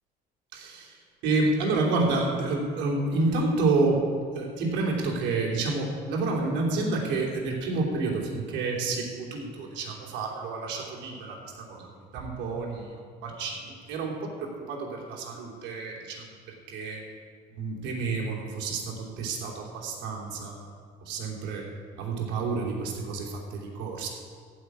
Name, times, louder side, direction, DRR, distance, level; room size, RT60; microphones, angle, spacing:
voice 1, 0.5-1.0 1.2-4.0 4.3-11.9 12.1-12.9 13.2-17.0 17.5-20.5 21.1-21.6 22.0-24.1, right 3 dB, 80° right, -2 dB, 3.2 m, -29 dB
15.0 x 5.7 x 9.7 m, 2.2 s
cardioid pair, 110°, 18 cm